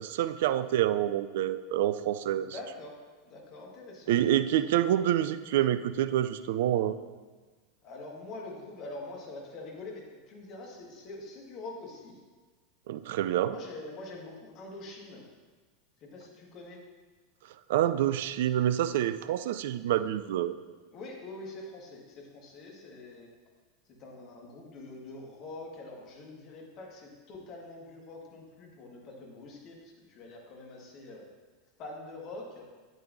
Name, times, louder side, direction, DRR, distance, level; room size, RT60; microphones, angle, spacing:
voice 1, 0.0-2.5 4.1-7.0 12.9-13.6 17.7-20.6, right 12 dB, 60° right, 13 dB, 0.3 m, -27 dB
voice 2, 2.3-2.9 3.2-4.6 7.8-12.2 13.3-15.3 16.0-16.8 20.9-23.3 24.0-31.2 31.8-32.7, left 2 dB, 45° left, 0 dB, 1.8 m, -45 dB
9.0 x 8.6 x 2.7 m, 1.4 s
figure-of-eight pair, 85°, 0 cm